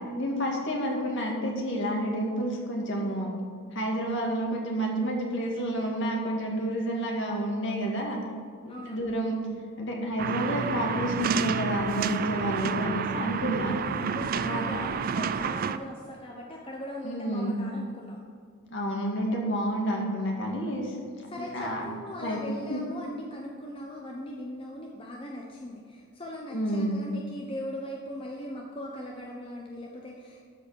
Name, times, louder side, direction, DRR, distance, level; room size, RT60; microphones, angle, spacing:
voice 1, 0.2-3.3 3.7-8.2 8.7-9.4 9.8-13.8 14.3-14.9 17.0-17.6 18.7-21.0 21.3-21.8 22.2-22.4 22.7-22.8 26.5-26.9, equal, 55° left, 0 dB, 1.9 m, -29 dB
voice 2, 8.7-9.2 13.8-18.2 20.4-20.8 21.3-30.4, equal, 25° left, -1 dB, 0.8 m, -40 dB
sound 1, 10.2-15.8, right 6 dB, 40° right, 0.3 m, -30 dB
12.5 x 5.0 x 6.3 m, 2.2 s
head